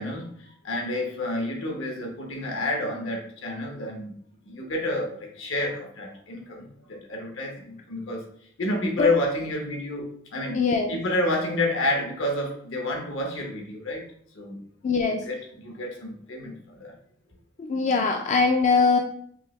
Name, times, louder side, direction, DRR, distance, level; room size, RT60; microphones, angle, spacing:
voice 1, 0.0-4.1 4.4-8.2 8.6-14.0 14.3-14.6 15.1-16.9, left 2 dB, 80° left, 1 dB, 1.0 m, -29 dB
voice 2, 10.5-10.9 14.8-15.2 17.6-19.0, left 4 dB, 35° left, 3 dB, 0.3 m, -22 dB
5.3 x 2.1 x 3.1 m, 0.63 s
head